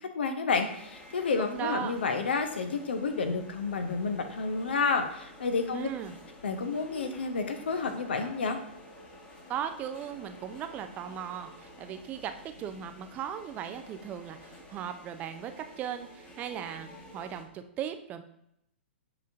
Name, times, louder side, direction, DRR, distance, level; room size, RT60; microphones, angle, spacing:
voice 1, 0.2-5.9 6.4-8.6, left 4 dB, 65° left, 6 dB, 0.8 m, -30 dB
sound 1, 0.5-17.4, left 1 dB, 20° left, 1.3 m, -50 dB
voice 2, 1.4-1.9 5.7-6.2 9.5-18.2, right 9 dB, 25° right, 9 dB, 0.5 m, -37 dB
7.7 x 5.1 x 2.6 m, 0.77 s
figure-of-eight pair, 110°, 6 cm